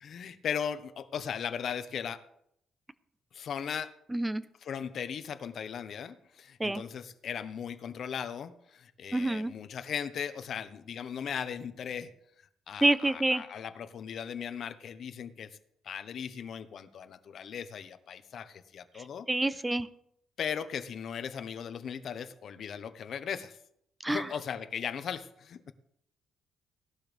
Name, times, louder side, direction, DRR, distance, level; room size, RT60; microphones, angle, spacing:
voice 1, 0.0-2.2 3.3-4.0 4.6-12.1 12.7-15.6 15.8-19.6 20.4-23.6 24.1-25.7, left 7 dB, 60° left, 11 dB, 1.1 m, -38 dB
voice 2, 4.1-4.4 6.6-6.8 9.1-9.5 12.8-13.4 19.3-19.9 24.0-24.2, right 2 dB, 10° right, 13 dB, 0.9 m, -27 dB
18.0 x 12.0 x 3.5 m, 0.73 s
cardioid pair, 90°, 0 cm